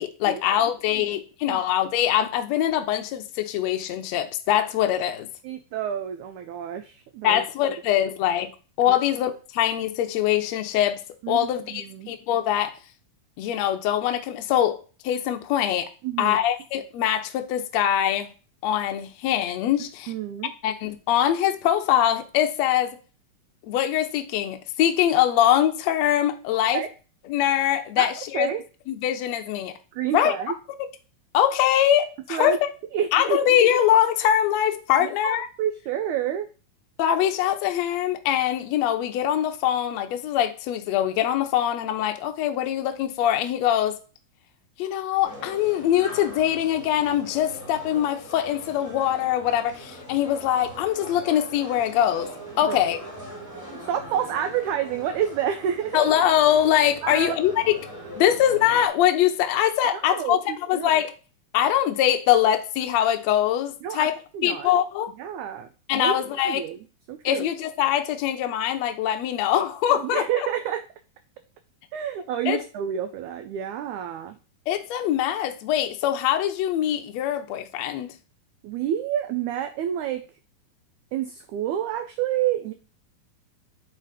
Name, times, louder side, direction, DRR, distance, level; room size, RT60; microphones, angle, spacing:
voice 1, 0.0-5.3 7.2-8.5 8.8-11.0 11.3-12.7 13.4-14.8 15.0-15.9 16.2-18.3 18.6-20.1 20.6-23.0 23.7-26.8 27.3-28.5 28.9-29.7 30.1-30.3 31.3-32.6 33.1-35.5 37.0-44.0 44.8-52.3 52.6-53.0 55.9-57.7 58.1-60.4 60.7-61.1 61.5-64.1 64.4-65.1 65.9-66.6 67.2-70.2 72.5-72.6 74.7-78.1, left 11 dB, 85° left, 1.5 m, -23 dB
voice 2, 5.4-7.4 8.9-9.0 11.2-12.1 16.0-16.4 20.1-20.5 26.7-26.9 28.0-28.1 28.3-28.6 29.9-30.5 32.3-32.6 32.9-33.4 35.0-36.5 52.7-52.8 53.9-56.1 57.0-57.4 59.9-61.0 63.8-64.7 65.2-66.2 66.4-67.5 69.9-70.8 71.9-74.4 78.6-80.2 81.1-82.7, right 10 dB, 90° right, 1.7 m, -29 dB
sound 1, 45.2-58.9, equal, 5° left, 2.0 m, -41 dB
8.4 x 4.0 x 5.1 m
omnidirectional pair, 4.2 m